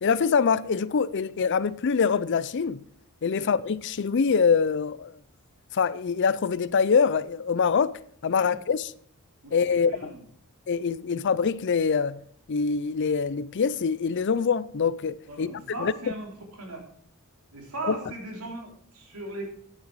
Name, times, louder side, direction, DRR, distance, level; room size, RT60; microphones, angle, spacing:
voice 1, 0.0-2.8 3.2-5.1 5.7-7.9 8.2-8.9 9.5-10.1 10.7-12.2 12.5-15.5 15.8-15.9 17.8-17.9, left 5 dB, 55° left, 0.5 m, -24 dB
voice 2, 9.4-10.2 11.2-11.3 15.3-16.3 16.6-16.8 17.5-19.5, right 2 dB, 80° right, 3.4 m, -38 dB
9.8 x 9.1 x 4.7 m
head